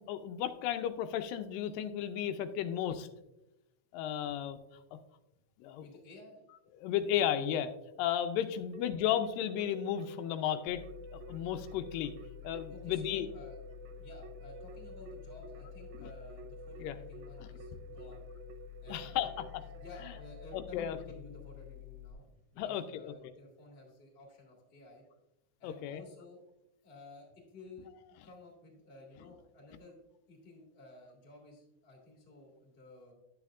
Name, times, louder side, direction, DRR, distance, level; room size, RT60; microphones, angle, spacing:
voice 1, 0.0-3.1 3.9-4.6 5.6-5.8 6.8-7.7 8.0-10.8 11.1-12.1 12.4-13.3 16.0-16.1 16.8-17.0 17.4-17.5 18.9-19.3 20.5-21.0 22.6-23.1 25.6-26.0, left 10 dB, 90° left, 9 dB, 2.3 m, -34 dB
voice 2, 5.8-6.4 12.7-13.6 14.0-18.2 18.8-22.2 22.5-25.0 25.6-26.4 26.8-27.9 28.2-30.0 30.3-33.1, left 2 dB, 25° left, -1 dB, 1.3 m, -53 dB
Keyboard (musical), 8.7-21.2, right 6 dB, 75° right, 1.9 m, -52 dB
sound 1, 10.7-22.1, left 20 dB, 60° left, 1.5 m, -50 dB
10.0 x 7.7 x 2.4 m, 0.91 s
omnidirectional pair, 3.9 m